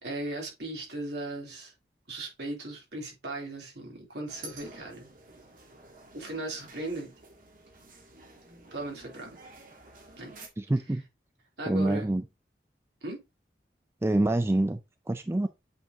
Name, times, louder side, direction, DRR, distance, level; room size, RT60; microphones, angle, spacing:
voice 1, 0.0-1.7 2.1-5.1 6.1-7.1 8.7-9.4 10.2-10.3 11.6-12.0 13.0-13.2, right 2 dB, 75° right, 3.0 m, -37 dB
sound 1, 4.3-10.5, right 2 dB, 50° right, 1.6 m, -51 dB
voice 2, 10.6-11.0 11.7-12.2 14.0-14.8 15.1-15.5, right 1 dB, 15° right, 0.3 m, -26 dB
8.2 x 4.4 x 2.7 m
head